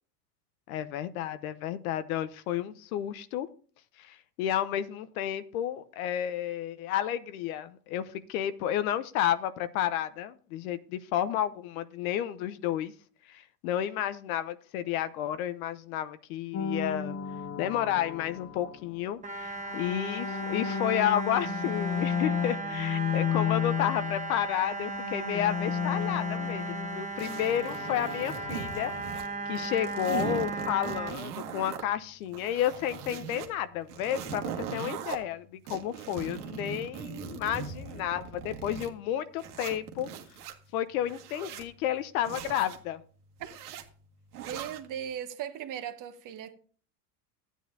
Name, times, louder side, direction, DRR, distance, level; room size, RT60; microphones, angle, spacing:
voice 1, 0.7-3.5 4.0-12.9 13.3-17.2 17.6-40.1 40.7-43.0, left 11 dB, 65° left, 0.8 m, -31 dB
sound 1, 16.5-19.0 19.6-24.5 24.7-29.7, left 7 dB, 30° left, 0.7 m, -34 dB
sound 2, 19.2-31.1, right 3 dB, 15° right, 1.1 m, -36 dB
sound 3, 27.2-29.3 29.6-31.8 32.3-33.5 33.9-35.2 35.7-38.9 39.4-40.5 41.0-41.7 42.2-42.8 43.4-43.8 44.3-44.9, right 8 dB, 75° right, 1.7 m, -39 dB
voice 2, 44.5-46.6, right 9 dB, 40° right, 1.3 m, -38 dB
14.5 x 9.2 x 2.7 m
hypercardioid pair, 90°, 47 cm